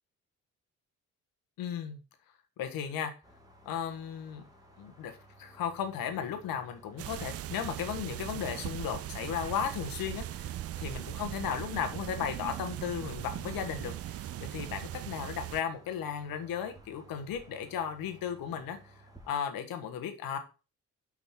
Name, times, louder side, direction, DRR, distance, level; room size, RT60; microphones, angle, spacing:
voice 1, 1.6-2.0 2.6-3.1 3.6-4.4 4.8-18.9 19.3-20.4, left 8 dB, 55° left, 1.4 m, -35 dB
sound 1, 3.2-19.3, right 1 dB, 10° right, 2.0 m, -57 dB
sound 2, 7.0-15.6, right 13 dB, 35° right, 0.4 m, -39 dB
6.0 x 5.6 x 4.5 m
figure-of-eight pair, 45°, 41 cm